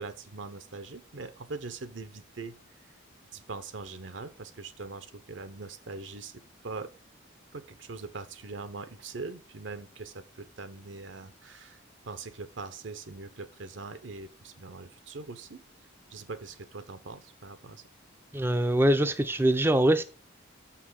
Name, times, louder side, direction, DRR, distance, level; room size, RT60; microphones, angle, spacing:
voice 1, 0.0-2.5 3.3-6.9 7.5-15.6 16.1-17.8, right 3 dB, 65° right, 0.7 m, -42 dB
voice 2, 18.3-20.0, right 1 dB, 10° right, 0.5 m, -23 dB
6.5 x 5.8 x 6.4 m
head